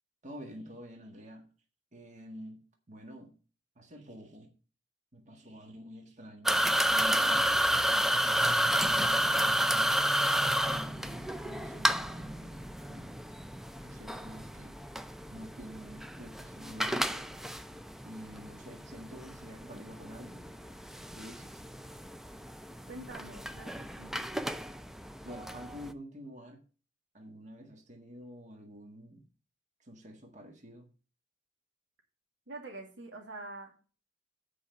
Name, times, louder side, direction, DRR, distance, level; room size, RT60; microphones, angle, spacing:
voice 1, 0.2-1.5 1.9-3.3 3.7-4.5 5.1-9.9 10.5-13.2 13.8-14.8 15.3-17.2 18.0-20.5 21.1-21.6 25.2-26.6 27.1-29.2 29.8-30.9, equal, 40° right, 3 dB, 1.7 m, -48 dB
sound 1, 6.5-25.9, equal, ahead, 0.5 m, -31 dB
voice 2, 22.9-24.2 32.5-33.7, right 2 dB, 70° right, 0 dB, 2.4 m, -45 dB
8.5 x 5.0 x 6.8 m, 0.37 s
head